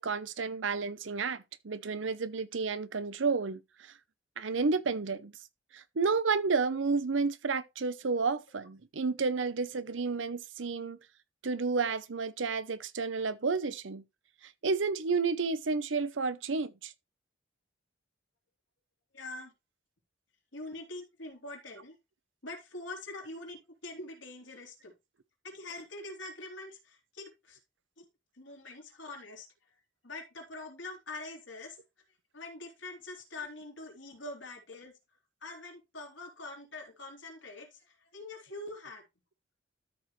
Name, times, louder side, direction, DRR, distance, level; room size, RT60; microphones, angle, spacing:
voice 1, 0.0-3.9 4.4-5.3 5.7-11.0 11.4-14.0 14.6-16.9, right 4 dB, 85° right, 0.7 m, -31 dB
voice 2, 19.1-19.5 20.5-22.0 22.4-24.9 25.4-27.6 28.0-28.1 28.3-29.5 30.0-31.8 32.3-34.9 35.4-39.0, left 2 dB, 80° left, 3.1 m, -44 dB
13.0 x 5.0 x 3.1 m
head